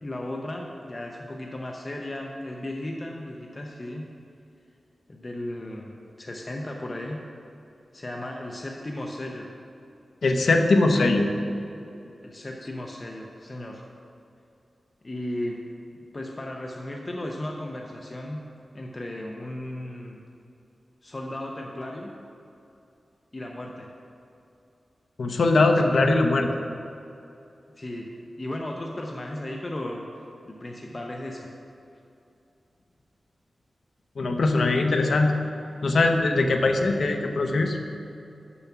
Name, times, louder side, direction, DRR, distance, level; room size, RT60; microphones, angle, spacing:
voice 1, 0.0-4.0 5.1-7.2 7.9-9.5 12.2-13.8 15.0-15.6 16.1-18.4 18.7-20.2 21.0-22.1 23.3-23.9 27.8-30.0 30.4-31.5, left 1 dB, 30° left, 0 dB, 0.6 m, -35 dB
voice 2, 10.2-11.3 25.2-26.5 34.2-35.4 35.8-37.8, left 2 dB, 70° left, 4 dB, 0.7 m, -21 dB
7.0 x 5.7 x 5.9 m, 2.7 s
wide cardioid pair, 125°, 0 cm